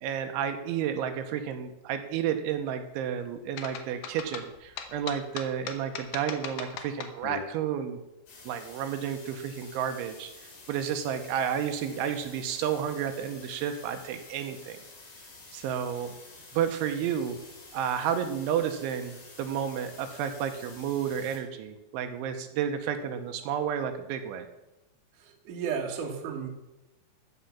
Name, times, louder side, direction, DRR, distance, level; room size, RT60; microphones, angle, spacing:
voice 1, 0.0-8.0 8.5-14.8 15.5-16.1 16.5-17.4 17.7-24.5, right 8 dB, 80° right, 7 dB, 3.2 m, -31 dB
sound 1, 3.6-7.4, left 8 dB, 75° left, 2.2 m, -38 dB
sound 2, 8.3-21.4, left 3 dB, 55° left, 5.4 m, -50 dB
voice 2, 25.2-26.5, right 6 dB, 55° right, 2 dB, 2.6 m, -33 dB
14.5 x 6.3 x 7.0 m, 1.0 s
omnidirectional pair, 5.4 m